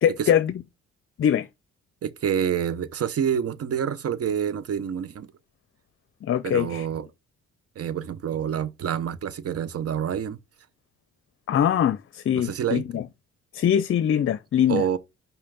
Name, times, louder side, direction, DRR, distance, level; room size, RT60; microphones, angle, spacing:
voice 1, 0.0-0.5 1.2-1.5 6.2-6.9 11.5-13.1 13.5-14.8, left 9 dB, 45° left, 0.6 m, -22 dB
voice 2, 2.0-5.3 6.4-7.1 7.8-10.4 12.3-12.8 14.7-15.0, right 8 dB, 50° right, 0.9 m, -27 dB
5.6 x 4.5 x 5.1 m
cardioid pair, 90°, 30 cm